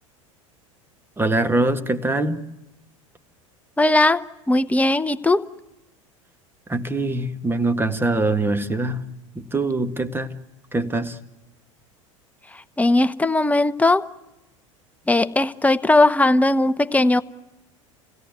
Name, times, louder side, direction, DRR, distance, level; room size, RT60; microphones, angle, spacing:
voice 1, 1.2-2.4 6.7-9.0 9.3-10.3 10.7-11.2, right 2 dB, 15° right, 1.7 m, -23 dB
voice 2, 3.8-5.4 12.8-14.1 15.1-17.2, left 2 dB, 10° left, 0.9 m, -18 dB
28.0 x 17.0 x 9.5 m
hypercardioid pair, 85°, 17 cm